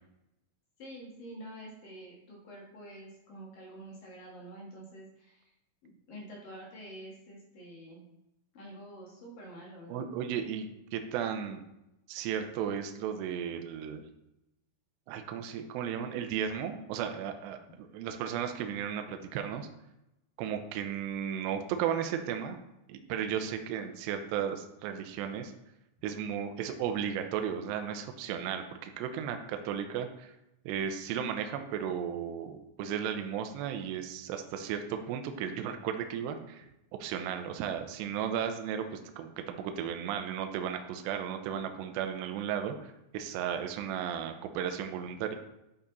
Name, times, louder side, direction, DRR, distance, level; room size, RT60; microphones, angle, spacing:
voice 1, 0.8-5.4 5.8-8.0 8.5-10.1, right 1 dB, 60° left, -3 dB, 2.5 m, -47 dB
voice 2, 9.9-10.7 10.9-11.6 12.1-14.0 15.1-19.7 20.4-22.6 22.9-25.5 26.0-30.3 30.7-36.7 36.9-45.3, right 8 dB, 85° right, 6 dB, 2.5 m, -35 dB
11.0 x 4.3 x 4.0 m, 0.90 s
omnidirectional pair, 5.8 m